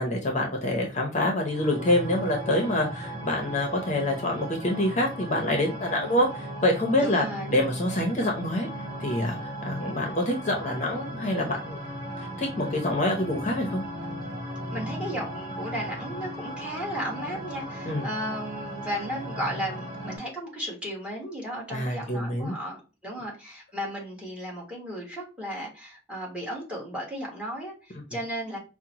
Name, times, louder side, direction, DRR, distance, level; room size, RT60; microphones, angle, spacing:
voice 1, 0.0-8.7 9.0-11.8 12.4-13.8 17.9-18.1 21.7-22.5, left 1 dB, 40° left, 1 dB, 0.7 m, -26 dB
sound 1, 1.2-20.2, right 1 dB, 25° right, 1.3 m, -37 dB
voice 2, 7.0-7.6 14.7-28.6, equal, 5° right, -2 dB, 1.3 m, -35 dB
5.0 x 2.1 x 2.8 m, 0.32 s
head